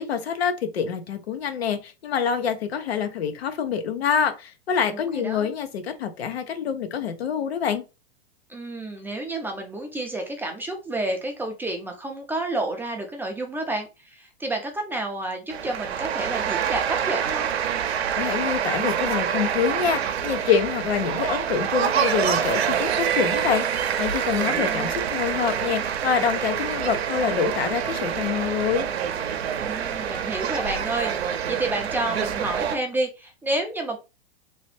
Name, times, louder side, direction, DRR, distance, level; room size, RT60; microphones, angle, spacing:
voice 1, 0.0-7.8 18.2-28.9, left 7 dB, 80° left, 9 dB, 0.9 m, -26 dB
voice 2, 4.9-5.5 8.5-17.5 24.3-25.0 29.6-34.0, right 2 dB, 5° right, 3 dB, 0.4 m, -30 dB
sound 1, 15.5-32.8, right 8 dB, 85° right, 0.7 m, -26 dB
2.9 x 2.9 x 3.2 m, 0.28 s
hypercardioid pair, 125°, 31 cm